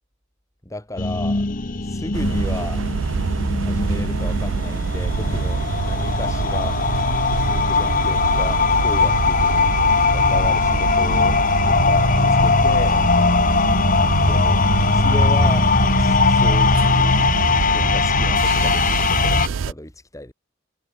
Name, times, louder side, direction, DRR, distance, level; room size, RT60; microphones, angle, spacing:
voice 1, 0.6-1.5 1.8-2.9 3.5-6.8 7.4-9.8 10.1-11.4 11.6-13.1 14.1-15.7 16.0-17.2 17.5-20.3, left 1 dB, 15° left, 4.4 m, -34 dB
sound 1, 1.0-19.5, left 4 dB, 45° left, 1.1 m, -19 dB
sound 2, 2.1-19.7, right 5 dB, 70° right, 0.4 m, -25 dB
head